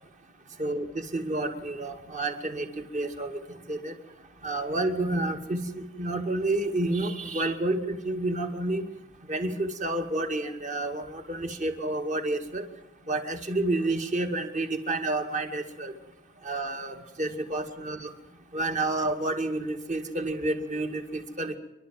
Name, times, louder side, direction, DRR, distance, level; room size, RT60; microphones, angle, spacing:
voice 1, 0.6-3.4 3.7-3.9 4.4-8.8 9.3-12.7 13.1-15.9 16.4-18.1 18.5-21.6, right 2 dB, 35° right, 5 dB, 2.2 m, -30 dB
29.0 x 12.0 x 7.6 m, 0.95 s
head